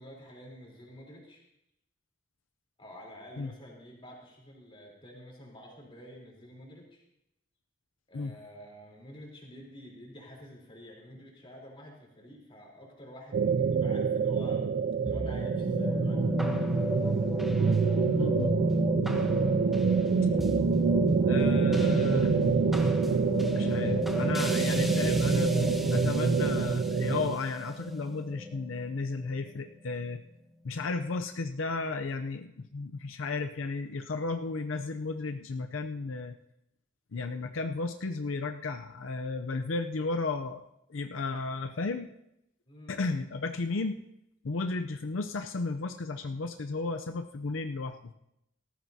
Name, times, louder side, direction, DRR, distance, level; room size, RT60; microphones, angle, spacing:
voice 1, 0.0-1.4 2.8-7.0 8.1-14.6 15.0-16.2 42.7-43.0, equal, 25° left, -2 dB, 3.6 m, -49 dB
sound 1, 13.3-27.4, right 5 dB, 50° right, 0.3 m, -27 dB
sound 2, 15.1-29.5, left 1 dB, ahead, 1.0 m, -32 dB
voice 2, 18.2-18.6 21.2-22.4 23.5-25.5 25.9-30.2 30.6-36.4 37.1-40.6 40.9-42.1 42.9-44.0 44.4-48.1, left 3 dB, 90° left, 7 dB, 0.6 m, -34 dB
18.5 x 13.5 x 2.8 m, 0.82 s
head